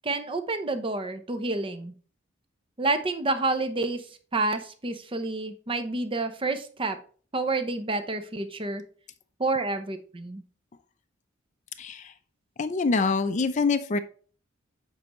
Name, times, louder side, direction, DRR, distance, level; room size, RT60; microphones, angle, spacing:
voice 1, 0.0-1.9 2.8-4.0 4.3-7.0 7.3-8.8 9.4-10.4, right 3 dB, 25° right, 9 dB, 0.7 m, -29 dB
voice 2, 11.8-12.1 12.6-14.0, left 4 dB, 35° left, 8 dB, 0.5 m, -25 dB
7.7 x 4.6 x 3.0 m, 0.42 s
head